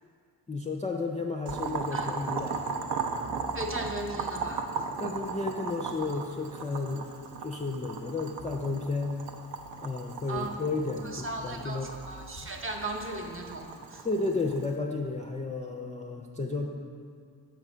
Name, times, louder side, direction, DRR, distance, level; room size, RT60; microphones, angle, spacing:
voice 1, 0.5-2.6 5.0-7.1 7.4-9.2 9.8-11.9 14.0-16.7, left 3 dB, 20° left, 0 dB, 0.3 m, -32 dB
Boiling, 1.5-14.7, right 5 dB, 85° right, 0.6 m, -37 dB
sound 1, 3.2-4.7 6.4-6.9 8.4-8.7 10.4-11.9 12.4-13.6, right 1 dB, 65° right, 1.0 m, -48 dB
voice 2, 3.5-4.7 10.3-10.5 11.0-14.1, right 2 dB, 30° right, 2 dB, 0.6 m, -36 dB
6.6 x 5.0 x 6.1 m, 2.1 s
wide cardioid pair, 170°, 40 cm